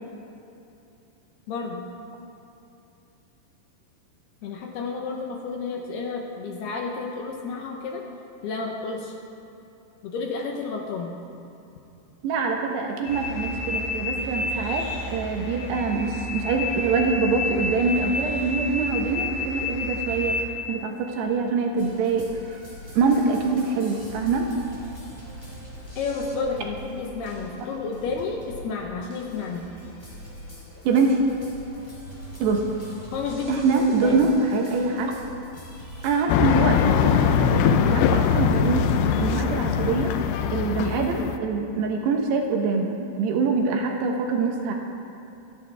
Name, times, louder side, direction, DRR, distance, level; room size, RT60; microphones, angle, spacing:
voice 1, 1.5-1.9 4.4-8.0 8.4-9.2 10.0-11.1 26.0-29.7 33.1-34.3, left 4 dB, 75° left, 1 dB, 2.6 m, -31 dB
voice 2, 12.2-14.8 15.1-20.4 20.7-22.6 23.0-24.5 30.8-31.2 32.4-32.6 33.5-35.1 36.0-38.9 39.2-40.1 40.5-44.7, right 4 dB, 70° right, 1 dB, 2.9 m, -24 dB
sound 1, 13.0-20.4, left 2 dB, 45° left, 3.6 m, -30 dB
sound 2, 21.8-36.3, equal, 15° left, 2.2 m, -42 dB
sound 3, 36.3-41.4, left 8 dB, 90° left, 2.3 m, -21 dB
26.5 x 11.0 x 3.4 m, 2.9 s
omnidirectional pair, 5.5 m